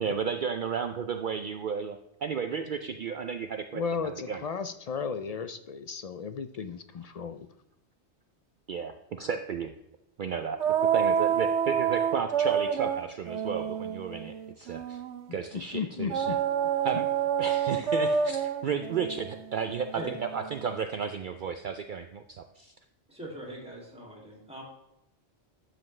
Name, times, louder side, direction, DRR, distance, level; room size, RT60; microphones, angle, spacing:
voice 1, 0.0-4.4 8.7-9.7 10.2-15.0 15.3-16.3 16.8-17.1 17.4-22.7, right 6 dB, 55° right, 8 dB, 0.6 m, -33 dB
voice 2, 3.7-7.5 15.5-16.4, left 5 dB, 55° left, 11 dB, 0.4 m, -34 dB
sound 1, 10.6-15.2 16.1-20.8, right 7 dB, 85° right, 0.9 m, -28 dB
voice 3, 23.1-24.6, right 2 dB, 5° right, -2 dB, 2.5 m, -41 dB
12.0 x 7.6 x 3.2 m, 0.86 s
omnidirectional pair, 1.1 m